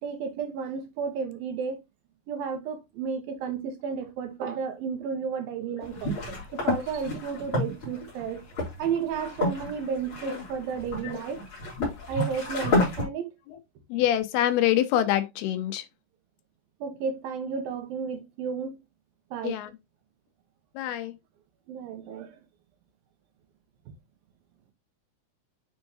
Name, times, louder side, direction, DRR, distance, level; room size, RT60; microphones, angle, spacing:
voice 1, 0.0-1.8 2.3-8.5 8.8-11.4 12.1-13.3 16.8-18.8 19.3-19.6 21.7-22.4 23.9-24.0, right 6 dB, 70° right, 2.7 m, -32 dB
sound 1, 5.8-13.0, left 2 dB, 30° left, 4.0 m, -30 dB
voice 2, 13.9-15.8 19.4-19.7 20.8-21.1, left 12 dB, 80° left, 2.8 m, -25 dB
9.2 x 4.7 x 2.8 m
omnidirectional pair, 4.6 m